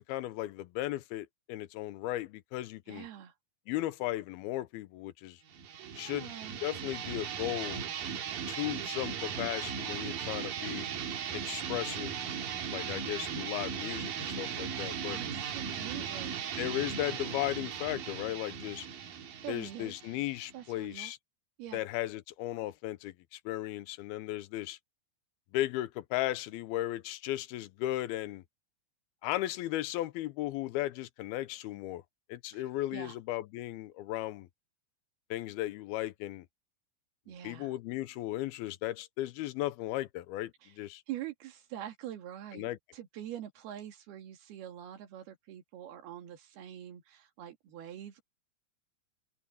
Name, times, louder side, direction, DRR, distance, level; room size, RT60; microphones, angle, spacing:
voice 1, 0.0-3.1 3.7-5.4 6.0-6.3 6.6-7.8 8.5-10.9 11.3-12.2 12.7-15.2 16.6-18.9 19.5-21.2 21.7-24.8 25.5-28.4 29.2-32.0 32.3-34.5 35.3-36.5 37.4-41.0 42.5-42.8, left 15 dB, 90° left, 2.7 m, -36 dB
voice 2, 2.9-3.3 5.8-6.6 15.1-16.5 19.4-19.9 20.5-21.1 21.6-21.8 32.5-32.7 32.9-33.2 37.3-37.7 40.6-40.7 41.1-48.2, right 11 dB, 90° right, 4.1 m, -44 dB
sound 1, 5.5-20.9, right 7 dB, 70° right, 3.5 m, -38 dB
open air
omnidirectional pair, 4.3 m